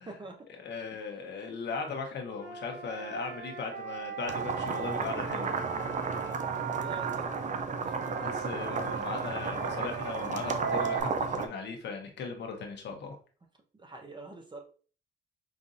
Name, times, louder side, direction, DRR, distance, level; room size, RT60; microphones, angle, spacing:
voice 1, 0.0-0.5 6.7-8.7 13.7-14.6, right 2 dB, 25° right, 3 dB, 0.9 m, -46 dB
voice 2, 0.6-5.6 8.2-13.1, left 5 dB, 60° left, 2 dB, 1.0 m, -38 dB
Wind instrument woodwind instrument, 2.3-7.2 7.8-11.0, right 6 dB, 75° right, 1.2 m, -39 dB
sound 1, 4.3-11.5, right 5 dB, 40° right, 0.5 m, -33 dB
5.2 x 2.6 x 2.5 m, 0.40 s
cardioid pair, 90°, 20 cm